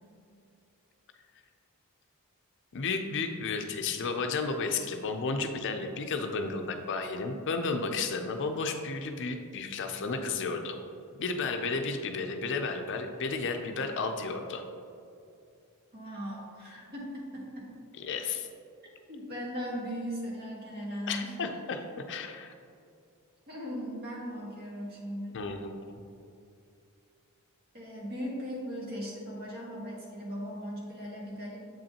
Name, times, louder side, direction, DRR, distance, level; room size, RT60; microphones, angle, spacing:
voice 1, 2.7-10.8 11.2-14.6 18.0-18.5 21.1-22.5 25.3-26.0, left 4 dB, 55° left, 5 dB, 0.5 m, -33 dB
voice 2, 15.9-17.7 19.1-21.4 23.5-25.4 27.7-31.6, equal, 45° right, -3 dB, 1.5 m, -38 dB
7.5 x 5.2 x 2.9 m, 2.5 s
head